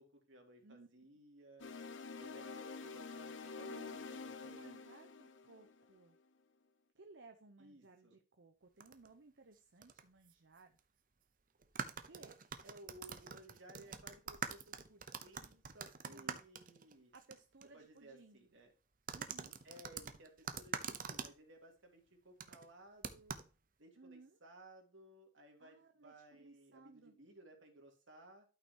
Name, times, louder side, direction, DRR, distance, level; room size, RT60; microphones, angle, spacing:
voice 1, 0.0-1.7 2.2-4.6 7.6-8.2 12.6-17.1 17.7-18.7 19.6-23.3 23.8-28.4, right 1 dB, 85° right, 1 dB, 2.9 m, -59 dB
sound 1, 1.6-5.9, left 4 dB, 80° left, 0.8 m, -48 dB
voice 2, 3.5-6.2 6.9-10.8 12.1-12.4 16.1-16.4 17.1-18.4 19.1-19.6 24.0-24.4 25.6-27.1, right 3 dB, 70° right, 5 dB, 0.8 m, -60 dB
sound 2, 8.8-9.1 9.8-10.0 10.3-10.4 11.6-17.3 17.6-17.7 19.1-21.3 22.4-22.6 23.0-23.5, right 6 dB, 45° right, 0.8 m, -45 dB
12.5 x 5.9 x 2.9 m, 0.33 s
head